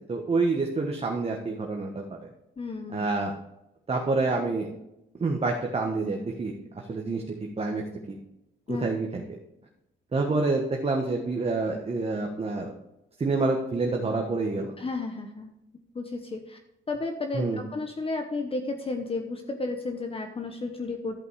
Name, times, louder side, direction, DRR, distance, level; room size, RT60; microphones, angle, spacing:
voice 1, 0.1-2.0 2.9-3.3 3.9-4.7 5.2-7.2 7.6-8.2 8.8-9.2 10.1-12.7 13.2-14.7 17.3-17.6, right 3 dB, 30° right, 1 dB, 1.3 m, -27 dB
voice 2, 2.6-3.1 8.7-8.9 14.8-15.5 15.9-16.6 16.9-21.2, left 3 dB, 30° left, 5 dB, 1.0 m, -33 dB
11.5 x 5.4 x 4.8 m, 0.87 s
cardioid pair, 90°, 20 cm